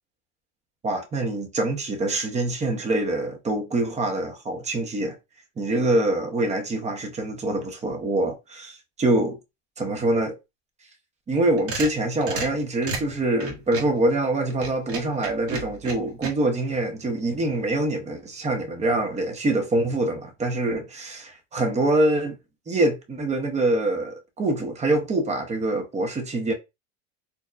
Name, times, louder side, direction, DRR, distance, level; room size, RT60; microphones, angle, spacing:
voice 1, 0.8-5.2 5.6-9.4 9.8-10.4 11.3-22.4 22.7-26.5, right 2 dB, 20° right, 0.9 m, -25 dB
sound 1, 11.3-14.0 14.5-16.3, right 3 dB, 40° right, 1.3 m, -33 dB
4.3 x 2.7 x 2.5 m
supercardioid pair, 130°, 34 cm